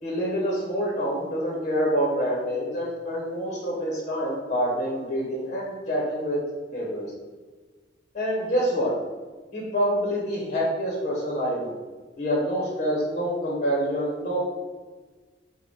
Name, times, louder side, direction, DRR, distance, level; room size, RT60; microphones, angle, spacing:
voice 1, 0.0-6.4 6.7-7.1 8.1-8.9 9.5-11.7 12.2-14.4, equal, 40° left, -4 dB, 0.7 m, -26 dB
3.6 x 2.1 x 3.8 m, 1.4 s
head